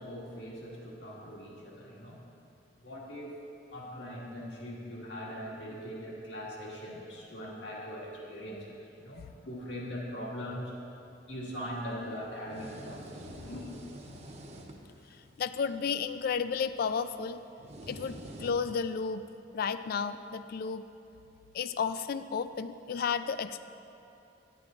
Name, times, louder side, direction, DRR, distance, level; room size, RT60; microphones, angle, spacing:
voice 1, 0.0-2.2 2.8-3.3 3.7-10.7 11.3-13.6, equal, 75° left, -4 dB, 1.8 m, -41 dB
sound 1, 11.5-18.9, right 1 dB, 35° right, 0.7 m, -49 dB
voice 2, 15.4-17.4 17.9-19.2 19.5-20.8 21.5-23.6, left 6 dB, 55° left, 12 dB, 0.3 m, -32 dB
10.5 x 7.7 x 3.7 m, 2.7 s
head